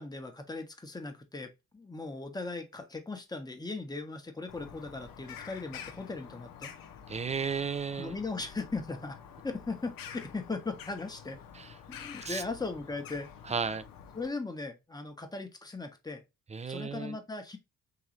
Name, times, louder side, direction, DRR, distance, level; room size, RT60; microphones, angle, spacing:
voice 1, 0.0-6.7 8.0-9.2 9.4-11.4 11.9-13.3 14.1-16.2 16.7-17.6, left 3 dB, 10° left, 0.9 m, -38 dB
Bird vocalization bird call bird song, 4.5-14.3, left 8 dB, 60° left, 0.7 m, -48 dB
voice 2, 7.1-8.2 11.5-11.7 12.2-12.4 13.4-13.8 16.5-17.2, right 5 dB, 20° right, 0.4 m, -34 dB
3.8 x 2.9 x 2.9 m
hypercardioid pair, 40°, 38 cm